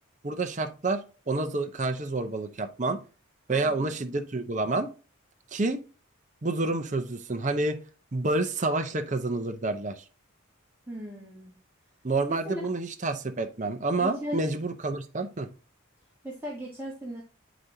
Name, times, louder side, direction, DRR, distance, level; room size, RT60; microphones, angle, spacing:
voice 1, 0.2-3.0 3.5-4.9 5.5-5.8 6.4-7.8 8.1-10.0 12.0-15.5, right 2 dB, 35° right, 7 dB, 0.7 m, -29 dB
voice 2, 3.5-3.9 10.9-11.5 12.3-12.7 14.0-14.5 16.2-17.2, right 1 dB, 10° right, -6 dB, 1.7 m, -37 dB
9.4 x 5.0 x 2.8 m, 0.33 s
head